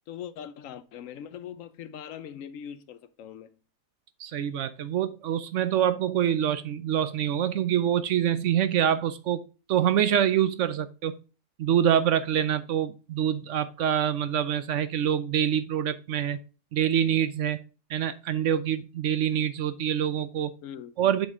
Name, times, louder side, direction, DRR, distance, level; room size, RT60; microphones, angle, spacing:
voice 1, 0.0-3.6 20.6-20.9, left 9 dB, 70° left, 1.0 m, -41 dB
voice 2, 4.2-9.4 9.7-11.2 11.6-16.4 16.7-17.6 17.9-20.5 21.0-21.3, right 9 dB, 65° right, 0.9 m, -25 dB
7.2 x 5.4 x 3.6 m
omnidirectional pair, 1.5 m